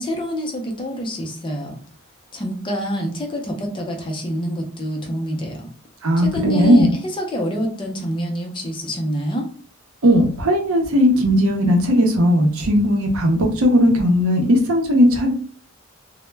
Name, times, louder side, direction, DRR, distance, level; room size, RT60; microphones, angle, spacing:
voice 1, 0.0-1.8 2.3-5.7 6.2-9.5, equal, 20° left, 1 dB, 0.5 m, -26 dB
voice 2, 6.0-6.9 10.0-15.3, equal, 65° right, 3 dB, 0.6 m, -17 dB
2.1 x 2.0 x 3.2 m, 0.44 s
head